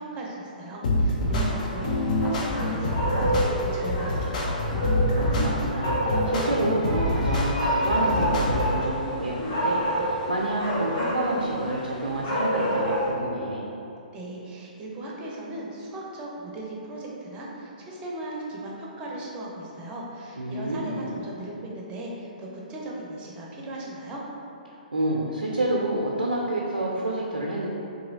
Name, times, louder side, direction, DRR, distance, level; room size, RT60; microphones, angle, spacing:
voice 1, 0.0-4.5 14.1-24.2, right 1 dB, 25° right, -3 dB, 0.5 m, -37 dB
sound 1, 0.8-8.8, left 1 dB, 55° left, 0.5 m, -26 dB
voice 2, 1.3-2.1 5.1-13.7 20.4-21.1 24.9-27.7, right 1 dB, 90° right, -3 dB, 0.4 m, -29 dB
sound 2, 1.4-13.1, right 1 dB, 35° left, 1.1 m, -29 dB
2.9 x 2.6 x 2.6 m, 2.8 s
figure-of-eight pair, 125°, 5 cm